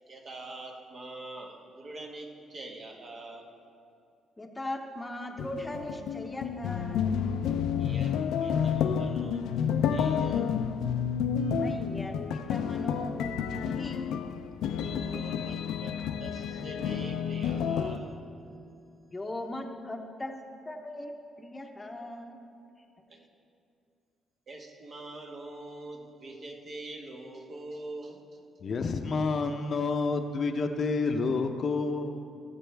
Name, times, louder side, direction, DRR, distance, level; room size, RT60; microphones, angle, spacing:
voice 1, 0.1-3.5 7.8-9.6 9.9-10.5 14.8-18.2 23.1-23.2 24.5-28.4, right 2 dB, 50° right, 1 dB, 1.5 m, -44 dB
voice 2, 4.4-7.1 11.5-14.1 19.1-20.4 20.7-22.5, left 1 dB, 15° left, 4 dB, 0.9 m, -39 dB
sound 1, 5.4-18.0, left 7 dB, 85° left, 0.5 m, -30 dB
voice 3, 28.6-32.2, left 4 dB, 50° left, 6 dB, 0.7 m, -29 dB
18.0 x 7.6 x 3.4 m, 2.5 s
cardioid pair, 90°, 0 cm